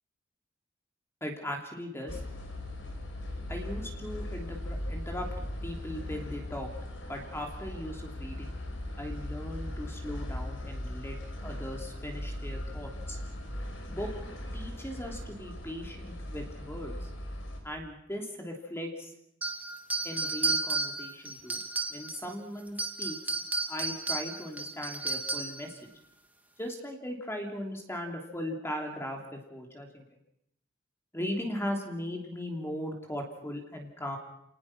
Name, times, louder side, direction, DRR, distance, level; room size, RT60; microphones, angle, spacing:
voice 1, 1.2-2.2 3.5-5.3 5.6-6.7 7.1-8.5 9.0-13.2 13.9-14.1 14.5-17.1 17.6-19.1 20.0-21.6 21.9-23.3 23.7-25.8 26.6-30.0 31.1-34.2, left 1 dB, 15° left, 2 dB, 3.1 m, -38 dB
sound 1, 2.1-17.6, left 1 dB, 80° left, 5.7 m, -39 dB
sound 2, 19.4-22.3 22.7-25.7, right 3 dB, 10° right, 1.9 m, -33 dB
30.0 x 19.0 x 6.1 m, 0.76 s
head